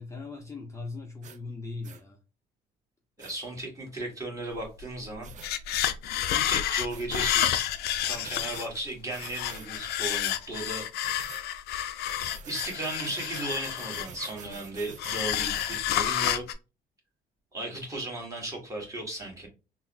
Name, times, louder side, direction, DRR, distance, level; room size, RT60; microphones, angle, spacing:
voice 1, 0.0-2.2, left 3 dB, 20° left, 0.5 m, -39 dB
sound 1, 1.2-1.4 1.8-2.0 3.2-3.4 5.2-5.5 6.9-7.4 8.0-8.7 9.1-9.7 11.0-11.5 12.0-15.8, right 8 dB, 45° right, 0.4 m, -46 dB
voice 2, 3.2-5.3 6.3-7.7 8.0-10.8 11.4-11.6 12.4-16.5 17.5-19.5, right 1 dB, 20° right, 1.5 m, -36 dB
sound 2, 4.8-4.9 5.1-8.8 9.1-14.5 15.0-16.5, left 11 dB, 75° left, 0.4 m, -30 dB
3.8 x 2.0 x 2.6 m
cardioid pair, 110°, 17 cm